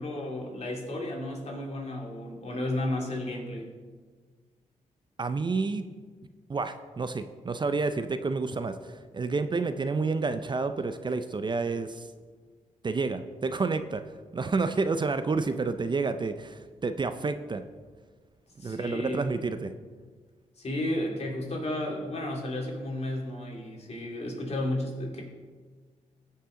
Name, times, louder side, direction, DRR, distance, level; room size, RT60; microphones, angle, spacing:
voice 1, 0.0-3.7 18.6-19.3 20.6-25.2, left 1 dB, 50° left, -1 dB, 2.5 m, -33 dB
voice 2, 5.2-5.9 6.5-12.1 12.8-14.0 14.3-17.6 18.6-19.7, right 4 dB, 35° right, 10 dB, 0.5 m, -29 dB
15.5 x 5.6 x 3.8 m, 1.5 s
cardioid pair, 65°, 14 cm